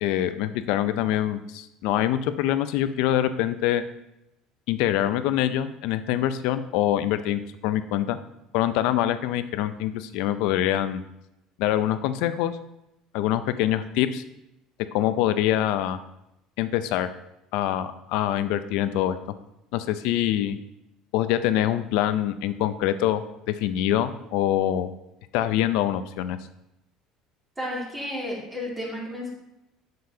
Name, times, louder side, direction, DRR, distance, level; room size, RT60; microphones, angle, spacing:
voice 1, 0.0-3.8 4.7-8.2 8.5-11.0 11.6-12.6 13.1-14.2 14.9-16.0 16.6-17.1 17.5-19.2 19.7-20.6 21.1-24.9 25.3-26.4, left 12 dB, 75° left, 12 dB, 0.5 m, -25 dB
voice 2, 27.6-29.3, left 1 dB, 15° right, -5 dB, 2.3 m, -32 dB
7.7 x 6.8 x 2.8 m, 0.86 s
supercardioid pair, 115°, 0 cm